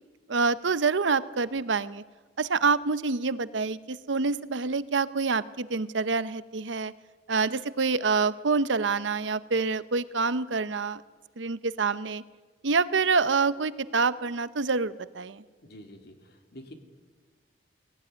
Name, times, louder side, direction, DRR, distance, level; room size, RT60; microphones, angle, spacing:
voice 1, 0.3-2.0 2.4-6.9 7.3-11.0 11.4-12.2 12.6-15.4, right 4 dB, 80° right, 15 dB, 0.8 m, -27 dB
voice 2, 15.6-16.1 16.5-16.7, equal, 60° left, 5 dB, 2.7 m, -46 dB
19.0 x 18.0 x 9.5 m, 1.4 s
head